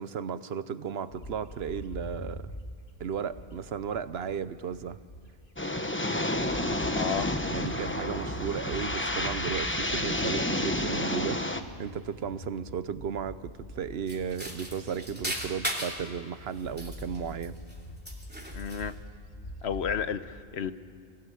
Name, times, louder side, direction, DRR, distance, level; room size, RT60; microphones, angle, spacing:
voice 1, 0.0-2.6 3.0-5.0 7.5-17.6, right 7 dB, 70° right, 14 dB, 1.0 m, -35 dB
Bird, 1.1-5.6 6.0-20.2, equal, 55° left, 2.4 m, -44 dB
sound 1, 5.6-11.6, left 1 dB, 10° left, 0.9 m, -30 dB
voice 2, 6.9-7.3 18.5-19.0 19.6-20.7, left 7 dB, 80° left, 12 dB, 1.1 m, -32 dB
sound 2, 14.1-16.1 16.6-17.8 18.1-18.9, equal, 10° right, 2.7 m, -37 dB
26.5 x 16.0 x 9.3 m, 2.2 s
omnidirectional pair, 1.1 m